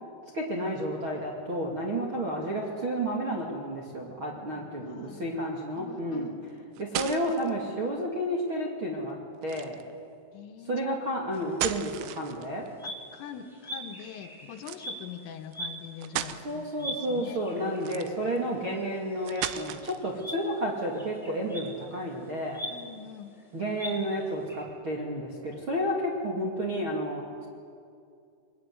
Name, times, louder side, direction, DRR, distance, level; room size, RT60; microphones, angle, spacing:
voice 1, 0.3-6.3 6.8-9.8 10.7-12.7 16.4-22.6 23.5-27.5, equal, 35° right, -3 dB, 2.2 m, -31 dB
voice 2, 4.6-5.4 5.8-6.5 10.3-10.9 12.8-17.4 22.7-23.3, left 8 dB, 80° left, 7 dB, 3.8 m, -44 dB
sound 1, 6.5-7.5 9.4-9.9 11.3-12.7 14.6-14.8 15.5-15.6 16.0-16.4 17.7-18.4 19.3-20.1, right 13 dB, 85° right, 3.6 m, -35 dB
sound 2, 11.3-24.6, equal, ahead, 4.3 m, -43 dB
23.5 x 22.5 x 9.6 m, 2.4 s
omnidirectional pair, 5.9 m